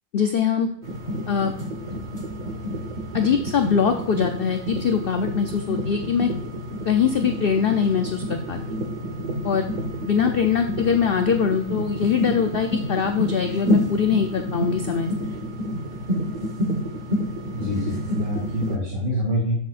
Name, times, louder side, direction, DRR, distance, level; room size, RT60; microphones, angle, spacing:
voice 1, 0.1-0.7 1.3-1.5 3.1-6.3 6.8-8.6 9.4-9.7 10.0-15.1, left 7 dB, 50° left, 5 dB, 0.7 m, -22 dB
sound 1, 0.8-18.8, equal, 35° right, 1.2 m, -29 dB
voice 2, 17.5-19.5, equal, 75° right, -5 dB, 3.3 m, -26 dB
11.0 x 7.7 x 2.5 m, 0.66 s
omnidirectional pair, 1.5 m